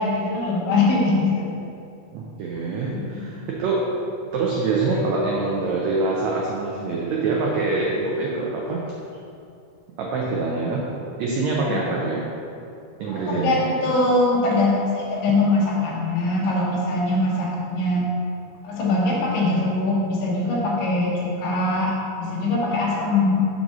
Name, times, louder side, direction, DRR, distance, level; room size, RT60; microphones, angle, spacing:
voice 1, 0.0-1.5 2.9-3.2 11.7-11.9 13.1-18.1 18.6-21.1 21.4-23.5, left 2 dB, 70° left, -5 dB, 2.7 m, -22 dB
voice 2, 2.1-4.0 4.3-8.9 10.0-10.9 11.2-12.3 13.0-13.8, right 3 dB, 85° right, -3 dB, 1.5 m, -25 dB
6.2 x 4.0 x 6.0 m, 2.6 s
omnidirectional pair, 4.0 m